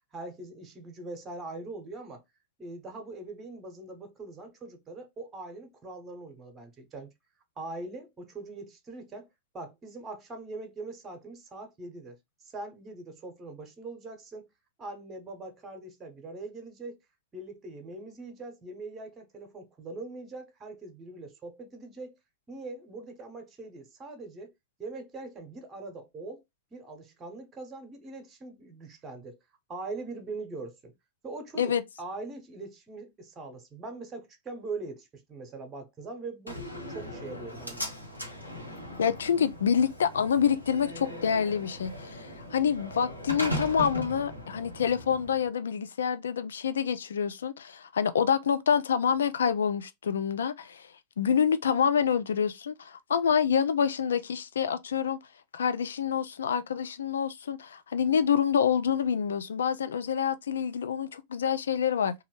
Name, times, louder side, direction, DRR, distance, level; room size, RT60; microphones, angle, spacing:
voice 1, 0.1-2.2 2.6-7.1 7.6-9.3 9.5-12.2 12.4-14.5 14.8-17.0 17.3-22.2 22.5-24.5 24.8-26.4 26.7-29.4 29.7-30.9 31.2-36.6 36.9-37.8, right 3 dB, 20° right, 0.8 m, -42 dB
Slam, 36.5-45.5, equal, 90° left, 0.8 m, -38 dB
voice 2, 39.0-50.9 51.2-55.2 55.5-62.1, left 7 dB, 65° left, 0.3 m, -27 dB
3.0 x 2.3 x 3.0 m
figure-of-eight pair, 90°, 0 cm